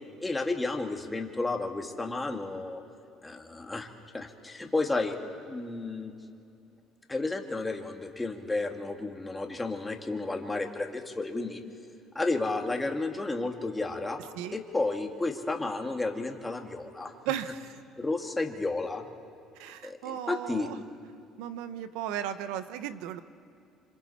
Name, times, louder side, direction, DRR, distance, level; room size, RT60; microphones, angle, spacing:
voice 1, 0.2-2.8 3.2-3.9 4.1-5.2 5.5-6.1 7.1-11.6 12.1-14.2 14.5-17.1 18.0-19.0 19.8-20.7, left 3 dB, 15° left, 3 dB, 2.1 m, -32 dB
voice 2, 17.2-17.8 19.5-20.8 21.4-23.2, right 10 dB, 85° right, 12 dB, 0.9 m, -35 dB
26.5 x 26.0 x 4.3 m, 2.5 s
supercardioid pair, 95°, 0 cm